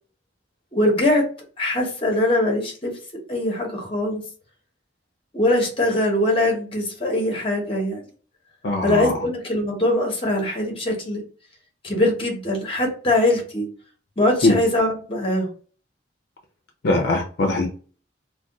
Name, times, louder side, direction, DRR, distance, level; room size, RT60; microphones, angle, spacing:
voice 1, 0.7-1.2 1.6-2.9 3.3-4.2 5.3-8.0 8.8-11.2 11.8-13.7 14.2-15.5, left 1 dB, 30° left, 2 dB, 0.9 m, -22 dB
voice 2, 8.6-9.1 14.4-14.6 16.8-17.7, left 2 dB, 60° left, 1 dB, 0.4 m, -20 dB
2.4 x 2.2 x 3.6 m, 0.40 s
head